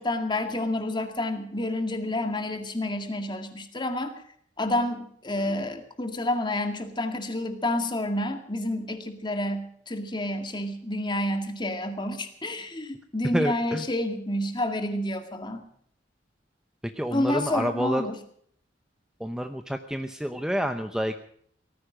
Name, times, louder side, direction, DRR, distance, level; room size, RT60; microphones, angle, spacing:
voice 1, 0.0-4.1 4.6-15.6 17.1-18.2, left 1 dB, 25° left, 6 dB, 2.1 m, -29 dB
voice 2, 13.3-13.8 17.0-18.1 19.2-21.1, equal, 5° right, 7 dB, 0.8 m, -28 dB
18.0 x 15.0 x 5.1 m, 0.62 s
head